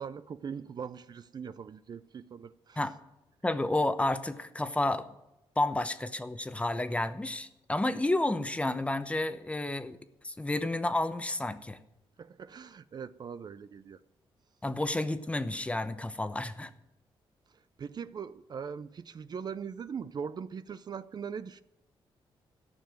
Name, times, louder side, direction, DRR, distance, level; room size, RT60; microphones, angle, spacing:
voice 1, 0.0-2.8 12.2-14.0 17.8-21.6, right 6 dB, 45° right, 14 dB, 0.5 m, -41 dB
voice 2, 3.4-5.1 5.6-10.0 10.2-11.8 14.6-16.7, left 2 dB, 15° left, 11 dB, 0.9 m, -31 dB
13.5 x 6.9 x 9.2 m, 0.90 s
cardioid pair, 95°, 10 cm